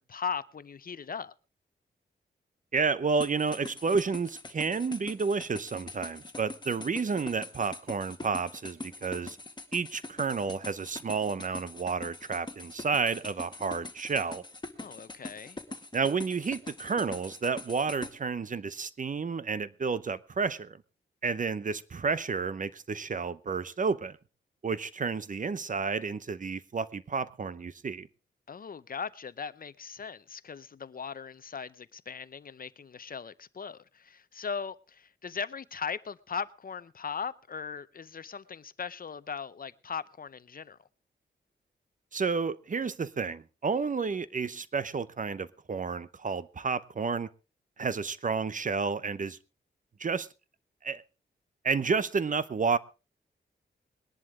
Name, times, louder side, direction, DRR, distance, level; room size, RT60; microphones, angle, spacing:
voice 1, 0.0-1.3 14.8-15.6 28.5-40.8, left 6 dB, 50° left, 0.7 m, -39 dB
voice 2, 2.7-9.4 9.7-14.4 15.9-20.8 21.2-24.2 24.6-28.1 42.1-47.3 47.8-49.4 50.0-50.3 50.8-51.0 51.6-52.8, right 5 dB, 45° right, 0.8 m, -31 dB
sound 1, 3.2-18.1, left 2 dB, 25° left, 1.9 m, -43 dB
21.5 x 11.0 x 3.6 m
wide cardioid pair, 85°, 19 cm